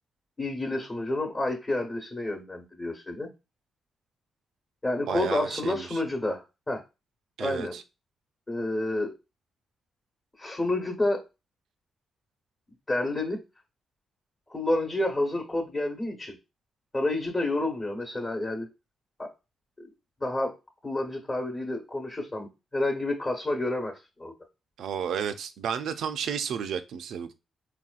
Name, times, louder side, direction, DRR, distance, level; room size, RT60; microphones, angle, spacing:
voice 1, 0.4-3.3 4.8-6.8 7.4-7.8 8.5-9.1 10.4-11.2 12.9-13.4 14.5-16.4 16.9-18.7 19.2-19.3 19.8-19.9 20.2-20.5 20.8-24.3, left 2 dB, 30° left, 1.0 m, -29 dB
voice 2, 5.1-6.0 7.4-7.8 24.8-27.3, right 7 dB, 75° right, 0.4 m, -32 dB
4.1 x 2.3 x 2.4 m
supercardioid pair, 55°, 0 cm